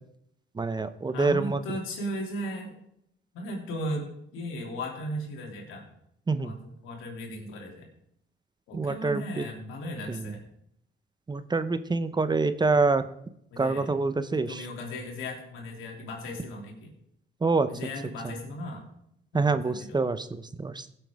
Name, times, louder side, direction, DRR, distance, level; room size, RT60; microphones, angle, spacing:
voice 1, 0.6-1.6 6.3-6.5 8.7-9.4 11.3-13.0 13.6-14.6 17.4-17.7 19.3-20.8, right 3 dB, 20° right, 12 dB, 0.7 m, -26 dB
voice 2, 1.1-2.8 3.3-5.9 6.4-7.9 8.7-10.5 13.5-13.9 14.3-16.9 17.7-18.9 19.3-20.0, equal, 90° left, 0 dB, 3.0 m, -36 dB
16.5 x 7.7 x 3.5 m, 0.74 s
cardioid pair, 90°, 20 cm